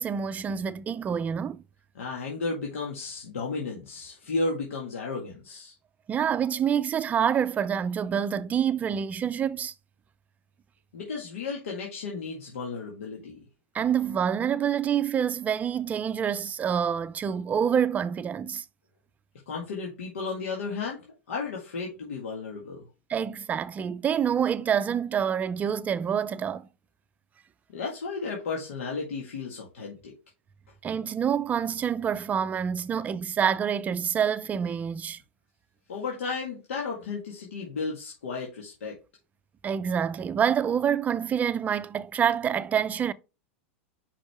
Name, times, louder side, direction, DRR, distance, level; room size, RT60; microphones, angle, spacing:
voice 1, 0.0-1.6 6.1-9.7 13.7-18.6 23.1-26.7 30.8-35.2 39.6-43.1, right 8 dB, 20° right, 0.4 m, -27 dB
voice 2, 2.0-5.7 10.9-13.4 19.5-21.0 21.3-22.8 27.7-30.1 35.9-39.0, left 4 dB, 90° left, 1.8 m, -33 dB
5.6 x 5.3 x 3.5 m
hypercardioid pair, 125°, 7 cm